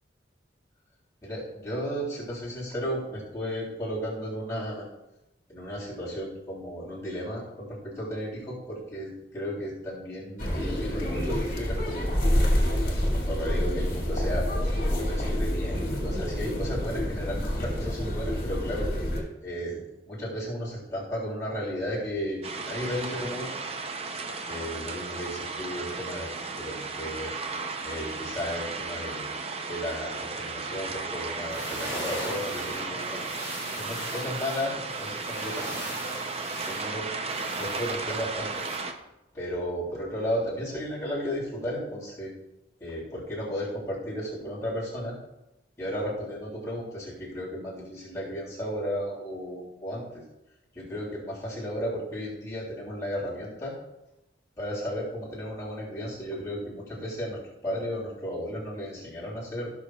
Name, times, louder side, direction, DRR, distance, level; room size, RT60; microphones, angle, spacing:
voice 1, 1.2-4.8 5.5-12.1 13.1-14.5 14.8-18.9 19.4-19.8 20.0-23.5 24.5-27.3 27.8-29.3 29.7-33.2 33.7-35.9 36.6-37.2 37.6-38.6 39.3-42.3 42.8-45.1 45.8-50.2 50.7-53.7 54.6-59.7, equal, 15° left, -7 dB, 3.3 m, -34 dB
sound 1, 10.4-19.2, equal, 45° left, 2.2 m, -27 dB
sound 2, 22.4-38.9, right 4 dB, 30° right, 0.6 m, -35 dB
sound 3, 31.3-38.8, equal, 15° right, 2.7 m, -39 dB
17.5 x 6.2 x 2.4 m, 0.91 s
head